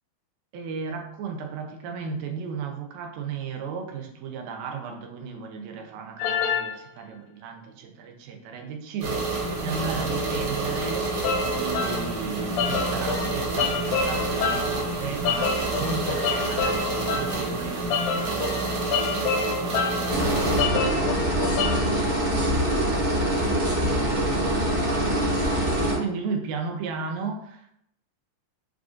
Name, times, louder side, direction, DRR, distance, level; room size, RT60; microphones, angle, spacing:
voice 1, 0.5-19.6 19.9-20.6 24.5-27.8, right 5 dB, 90° right, 3 dB, 2.3 m, -36 dB
sound 1, 6.2-6.7 11.2-12.0 12.6-14.8 15.2-17.4 17.9-20.1 20.6-21.8, left 6 dB, 85° left, 2.2 m, -27 dB
sound 2, 9.0-20.6, right 2 dB, 70° right, 2.4 m, -28 dB
sound 3, 20.1-26.0, right 1 dB, 50° right, 0.9 m, -24 dB
6.3 x 2.4 x 2.4 m, 0.74 s
omnidirectional pair, 3.9 m